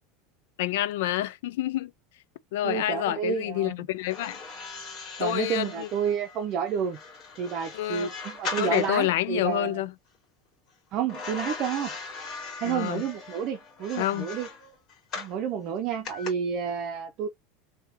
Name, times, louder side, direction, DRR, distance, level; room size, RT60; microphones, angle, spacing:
voice 1, 0.6-1.9 2.5-4.4 5.2-5.9 7.7-8.1 8.6-9.9 12.6-13.0 14.0-14.3, left 14 dB, 80° left, 0.5 m, -28 dB
voice 2, 2.6-3.7 5.2-7.0 7.4-9.8 10.9-11.9 12.6-14.5 15.2-17.3, right 7 dB, 40° right, 0.7 m, -30 dB
sound 1, 4.0-9.2 11.1-15.4 16.0-16.3, left 4 dB, 35° left, 2.3 m, -39 dB
3.5 x 2.9 x 2.9 m
supercardioid pair, 160°, 0 cm